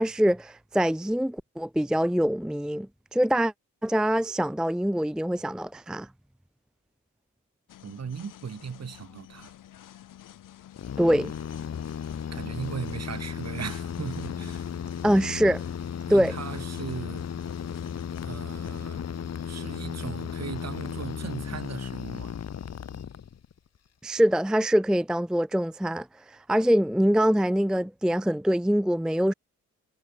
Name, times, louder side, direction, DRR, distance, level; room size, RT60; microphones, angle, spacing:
voice 1, 0.0-3.5 3.8-6.1 11.0-11.3 15.0-15.6 16.1-16.3 24.0-29.3, equal, ahead, 0.5 m, -24 dB
sound 1, 7.7-18.8, left 12 dB, 90° left, 4.5 m, -50 dB
voice 2, 7.8-9.5 12.3-14.7 16.1-17.3 18.2-19.0 19.5-22.4, right 7 dB, 55° right, 7.7 m, -37 dB
sound 2, 10.8-23.6, left 8 dB, 55° left, 1.7 m, -35 dB
cardioid pair, 85°, 31 cm